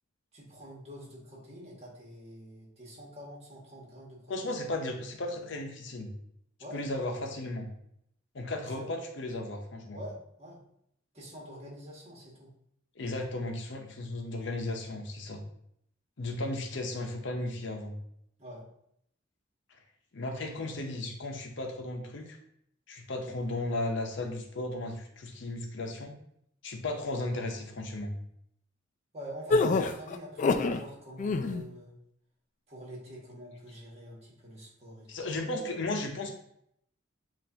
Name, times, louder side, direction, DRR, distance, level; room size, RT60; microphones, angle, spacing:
voice 1, 0.3-4.6 6.6-6.8 8.8-8.9 9.9-10.6 11.1-12.5 18.4-18.6 29.1-31.9 32.7-35.1, equal, 35° right, -4 dB, 1.4 m, -46 dB
voice 2, 4.3-6.2 6.7-7.7 8.3-10.0 13.0-15.4 16.2-18.0 20.1-22.4 22.9-26.1 26.6-28.2 35.1-36.3, left 2 dB, 65° left, 3 dB, 0.7 m, -35 dB
sound 1, 29.5-30.8 31.2-31.6, left 3 dB, 40° left, 0.3 m, -26 dB
7.5 x 2.5 x 2.8 m, 0.73 s
head